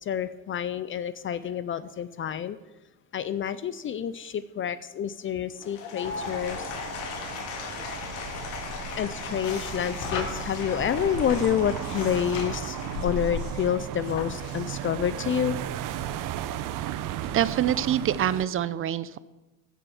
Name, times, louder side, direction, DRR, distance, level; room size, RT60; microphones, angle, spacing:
voice 1, 0.0-2.6 3.1-6.7 9.0-12.8 13.0-15.6, left 9 dB, 35° left, 14 dB, 0.5 m, -28 dB
Applause / Crowd, 5.5-13.8, left 5 dB, 85° left, 2.8 m, -38 dB
sound 1, 6.0-18.5, right 11 dB, 60° right, 0.9 m, -35 dB
sound 2, 8.0-14.8, left 5 dB, 70° left, 3.3 m, -38 dB
voice 2, 17.3-19.2, right 10 dB, 35° right, 17 dB, 0.6 m, -25 dB
15.5 x 7.2 x 7.1 m, 1.1 s
cardioid pair, 125°, 36 cm